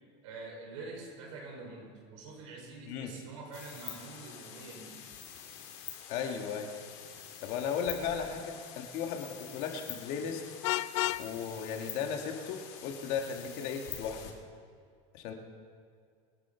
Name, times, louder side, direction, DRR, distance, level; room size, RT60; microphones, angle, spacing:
voice 1, 0.2-4.9 8.1-8.4, right 3 dB, 80° right, 0 dB, 5.3 m, -46 dB
sound 1, 3.5-14.3, left 9 dB, 65° left, 2.9 m, -47 dB
voice 2, 6.1-6.7 7.4-10.4 11.2-14.3 15.1-15.3, left 7 dB, 45° left, 3 dB, 1.8 m, -36 dB
Vehicle horn car horn honking, 10.6-11.3, left 17 dB, 85° left, 0.5 m, -30 dB
26.5 x 11.0 x 4.5 m, 2.2 s
cardioid pair, 175°, 15 cm